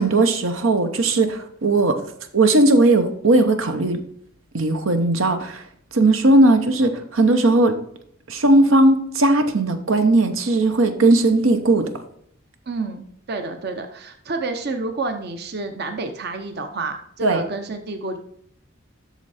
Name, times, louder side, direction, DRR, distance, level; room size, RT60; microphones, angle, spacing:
voice 1, 0.0-2.0 2.3-4.0 4.5-5.6 5.9-7.8 8.3-11.9 17.2-17.4, right 2 dB, 80° right, 7 dB, 0.9 m, -17 dB
voice 2, 12.7-18.2, right 3 dB, 50° right, 6 dB, 0.7 m, -29 dB
8.2 x 6.4 x 4.2 m, 0.67 s
head